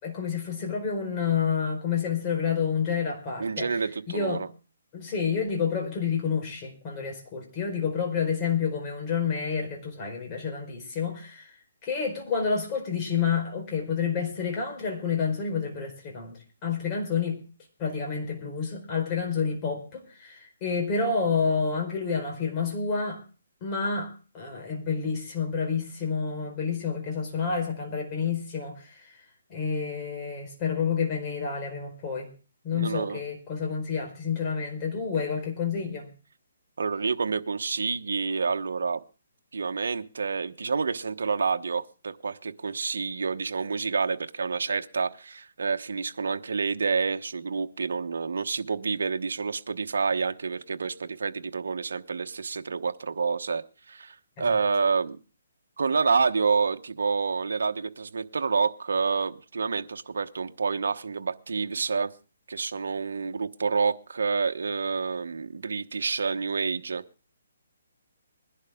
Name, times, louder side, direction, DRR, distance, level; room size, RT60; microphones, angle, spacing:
voice 1, 0.0-3.7 4.1-4.4 4.9-11.5 11.8-17.4 17.8-23.2 23.6-29.1 29.5-32.3 32.6-36.1 54.4-54.5, left 6 dB, 25° left, 1 dB, 4.7 m, -29 dB
voice 2, 3.4-4.5 32.7-33.2 36.8-39.0 39.5-55.2 55.8-62.1 62.5-67.0, right 5 dB, 80° right, 8 dB, 1.1 m, -28 dB
21.5 x 11.5 x 3.7 m, 0.36 s
hypercardioid pair, 160°, 0 cm